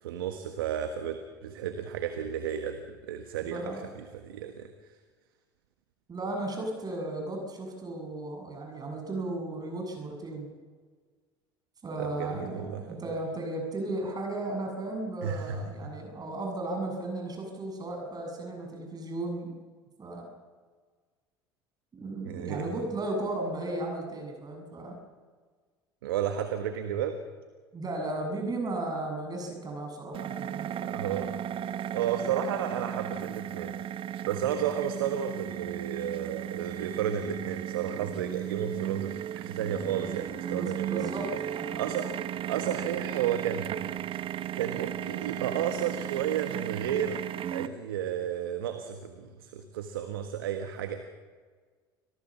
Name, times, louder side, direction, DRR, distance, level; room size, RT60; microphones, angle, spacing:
voice 1, 0.0-4.7 12.0-13.0 15.2-15.9 22.2-22.7 26.0-27.2 30.8-31.3 31.9-33.7 34.2-41.2 41.8-44.0 44.5-47.2 47.5-51.0, right 9 dB, 85° right, 7 dB, 1.5 m, -33 dB
voice 2, 3.4-3.8 6.1-10.5 11.8-19.5 20.0-20.3 21.9-25.0 27.7-30.9 40.5-41.8, right 2 dB, 35° right, 2 dB, 7.4 m, -35 dB
sound 1, 30.1-47.7, right 11 dB, 50° right, 1.2 m, -35 dB
26.0 x 17.5 x 7.4 m, 1.5 s
hypercardioid pair, 70°, 12 cm